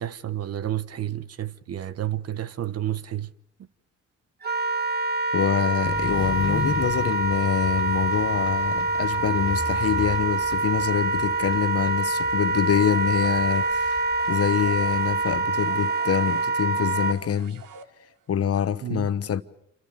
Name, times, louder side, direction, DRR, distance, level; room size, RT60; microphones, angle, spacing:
voice 1, 0.0-3.3 18.8-19.1, right 12 dB, 55° right, 1.1 m, -30 dB
Wind instrument woodwind instrument, 4.4-17.2, right 3 dB, 35° right, 1.5 m, -25 dB
voice 2, 5.3-17.6 18.3-19.4, left 9 dB, 50° left, 1.2 m, -25 dB
sound 1, 5.8-15.4, left 3 dB, 15° left, 1.0 m, -36 dB
sound 2, 12.8-18.3, right 6 dB, 85° right, 1.8 m, -47 dB
28.5 x 25.5 x 5.3 m
cardioid pair, 90°, 30 cm